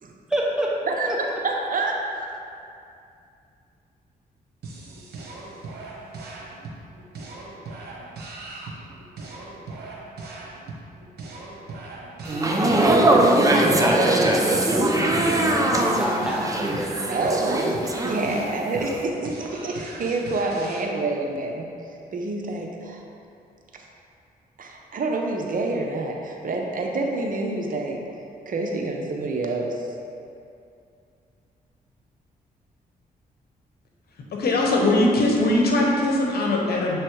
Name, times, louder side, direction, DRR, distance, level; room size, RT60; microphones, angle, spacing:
voice 1, 0.3-0.7 1.0-1.4 13.8-14.0 15.5-16.9, equal, 5° right, -4 dB, 1.3 m, -27 dB
voice 2, 0.9-2.3 12.3-14.1 15.0-15.4 17.1-21.7 22.1-23.0 24.6-28.0 28.5-29.9, right 2 dB, 55° right, 1 dB, 0.8 m, -28 dB
sound 1, 4.6-20.9, right 3 dB, 80° right, 1.0 m, -39 dB
sound 2, 12.3-18.5 18.8-19.0, right 1 dB, 20° right, 0.7 m, -21 dB
voice 3, 34.3-37.0, left 1 dB, 70° left, -1 dB, 1.0 m, -21 dB
7.0 x 3.2 x 4.6 m, 2.5 s
cardioid pair, 65°, 17 cm